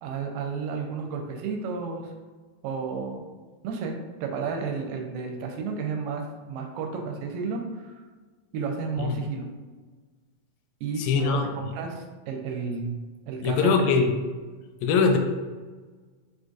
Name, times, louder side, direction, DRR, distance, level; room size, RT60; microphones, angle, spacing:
voice 1, 0.0-2.1 2.6-3.3 3.6-7.9 8.5-9.5 10.8-12.9 13.3-13.8, right 5 dB, 80° right, 2 dB, 2.1 m, -32 dB
voice 2, 11.0-11.5 13.4-14.1 14.8-15.2, left 5 dB, 85° left, 4 dB, 2.2 m, -22 dB
6.2 x 2.6 x 2.4 m, 1.4 s
omnidirectional pair, 4.0 m